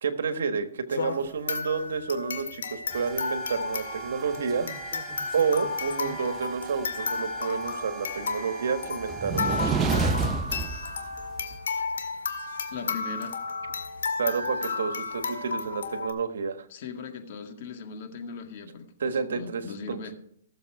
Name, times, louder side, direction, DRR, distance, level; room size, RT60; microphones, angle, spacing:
voice 1, 0.0-4.7 5.3-9.8 14.2-16.7 19.0-19.6 19.9-20.0, right 5 dB, 80° right, 9 dB, 1.4 m, -29 dB
sound 1, 0.9-16.1, left 4 dB, 85° left, 1.9 m, -33 dB
sound 2, 2.9-11.5, right 4 dB, 20° right, 0.8 m, -33 dB
voice 2, 12.7-13.4 16.7-20.2, left 5 dB, 50° left, 5 dB, 2.0 m, -39 dB
17.5 x 7.3 x 4.7 m, 0.67 s
hypercardioid pair, 150°, 0 cm